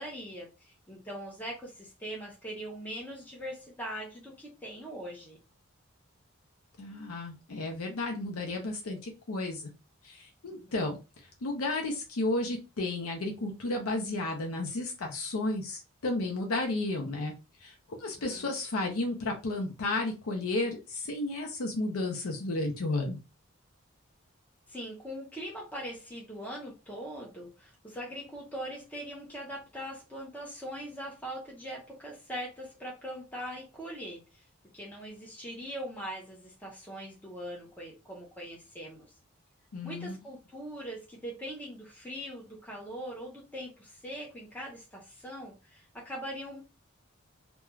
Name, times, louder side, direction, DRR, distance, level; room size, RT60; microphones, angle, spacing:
voice 1, 0.0-5.4 18.2-18.5 24.7-34.4 34.7-39.1 39.8-46.6, equal, 5° left, 0.6 m, -41 dB
voice 2, 6.8-9.7 10.0-11.0 11.4-17.3 17.6-23.2 39.7-40.2, left 2 dB, 85° left, 0.6 m, -33 dB
2.3 x 2.2 x 3.0 m
head